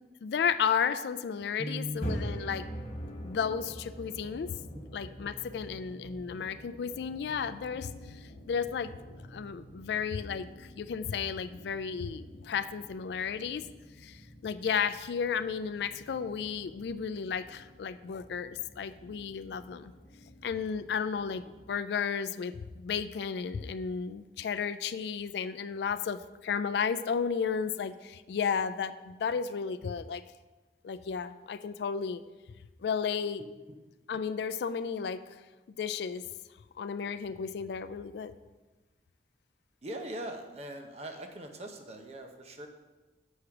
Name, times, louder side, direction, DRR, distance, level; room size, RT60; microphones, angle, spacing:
voice 1, 0.2-2.7 3.2-4.6 4.9-8.2 8.5-13.7 14.0-19.9 20.4-30.2 30.8-32.2 32.8-33.4 34.1-35.4 35.8-36.2 36.8-38.3, left 6 dB, 70° left, 13 dB, 0.3 m, -33 dB
voice 2, 1.6-2.0 33.4-33.5 39.8-42.7, equal, 35° right, 5 dB, 0.7 m, -40 dB
sound 1, 1.8-21.7, equal, 45° left, 1.2 m, -46 dB
7.3 x 4.9 x 5.8 m, 1.2 s
head